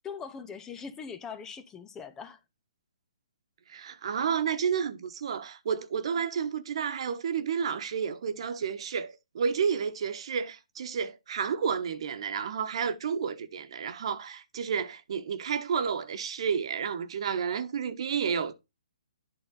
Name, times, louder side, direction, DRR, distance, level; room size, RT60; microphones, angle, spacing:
voice 1, 0.0-2.4, left 6 dB, 15° left, 0.5 m, -41 dB
voice 2, 3.7-18.5, right 6 dB, 55° right, 1.1 m, -31 dB
11.0 x 3.9 x 3.8 m
hypercardioid pair, 140°, 4 cm